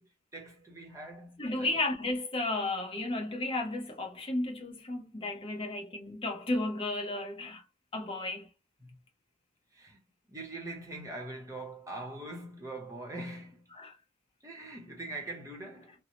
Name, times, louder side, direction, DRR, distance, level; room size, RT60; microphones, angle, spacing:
voice 1, 0.0-1.7 8.8-9.0 9.7-10.0 10.3-13.6 14.4-16.0, right 2 dB, 15° right, 0.8 m, -43 dB
voice 2, 1.4-7.6 7.9-8.5 13.7-14.0, left 2 dB, 25° left, 0.8 m, -33 dB
2.7 x 2.0 x 2.8 m
head